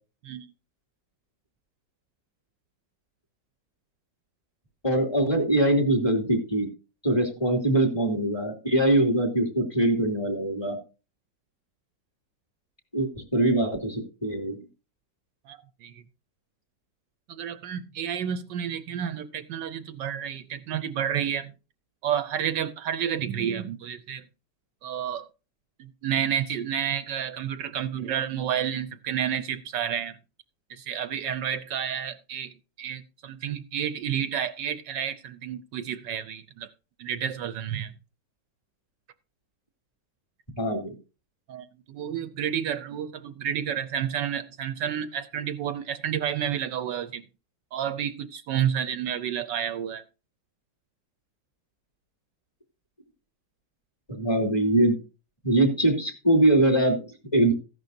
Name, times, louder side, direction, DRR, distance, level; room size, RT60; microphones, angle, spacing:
voice 1, 4.8-6.7 7.0-10.8 12.9-14.6 40.6-40.9 54.1-55.0 55.4-57.5, right 1 dB, 15° left, 2.5 m, -23 dB
voice 2, 15.5-16.0 17.3-21.5 22.0-24.2 24.8-25.3 25.8-30.2 30.7-36.7 37.0-37.9 41.5-47.2 47.7-50.0, right 9 dB, 75° right, 1.3 m, -30 dB
14.5 x 11.0 x 2.6 m
omnidirectional pair, 2.0 m